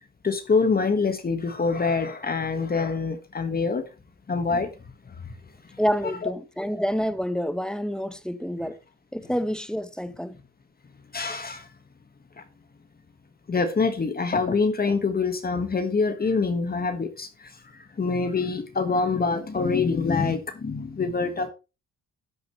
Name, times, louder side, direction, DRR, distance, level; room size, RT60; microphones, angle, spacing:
voice 1, 0.2-3.9 4.3-4.7 5.1-5.3 6.0-6.1 11.1-11.7 12.4-12.5 13.5-21.5, left 4 dB, 30° left, 1.5 m, -25 dB
voice 2, 5.8-8.8 9.1-10.4, equal, 5° left, 0.9 m, -28 dB
12.5 x 8.7 x 3.2 m
cardioid pair, 90°, 30 cm